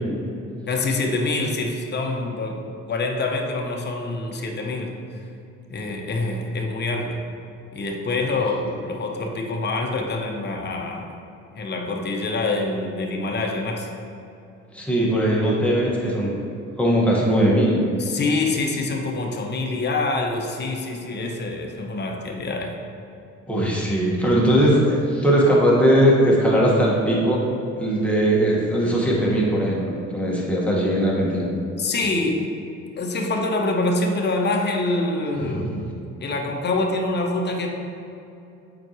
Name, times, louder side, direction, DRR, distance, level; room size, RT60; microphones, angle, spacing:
voice 1, 0.7-5.0 5.7-7.2 7.7-11.0 11.5-13.9 18.0-22.7 31.8-32.5 33.0-35.7 36.2-37.7, left 2 dB, 35° left, 1 dB, 0.8 m, -25 dB
voice 2, 14.7-16.3 16.8-17.8 23.5-27.4 27.8-31.5 35.4-35.8, right 1 dB, 5° left, -5 dB, 1.5 m, -19 dB
7.5 x 4.5 x 3.0 m, 2.8 s
cardioid pair, 90°, 30 cm